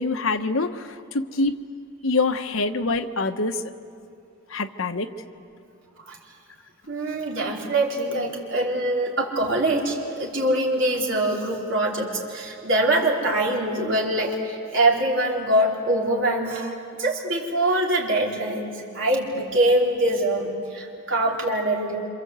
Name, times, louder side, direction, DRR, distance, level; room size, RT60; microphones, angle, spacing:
voice 1, 0.0-1.6 2.0-3.6 4.5-5.1, left 3 dB, 75° left, 8 dB, 1.1 m, -25 dB
voice 2, 6.9-16.7 17.0-22.1, right 1 dB, 65° right, -2 dB, 4.4 m, -23 dB
27.5 x 26.5 x 8.1 m, 2.4 s
head